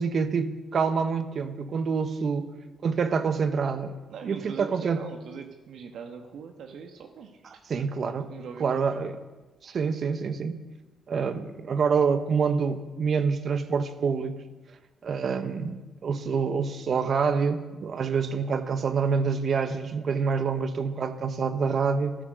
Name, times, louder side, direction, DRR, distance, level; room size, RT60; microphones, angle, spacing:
voice 1, 0.0-2.5 2.8-4.0 4.3-5.0 7.7-8.3 8.6-9.2 9.6-10.6 11.1-14.4 15.0-22.1, right 5 dB, 50° right, 10 dB, 1.4 m, -27 dB
voice 2, 4.1-7.6 8.3-8.8, right 6 dB, 70° right, 5 dB, 1.4 m, -41 dB
15.0 x 14.0 x 6.6 m, 1.2 s
cardioid pair, 90°, 0 cm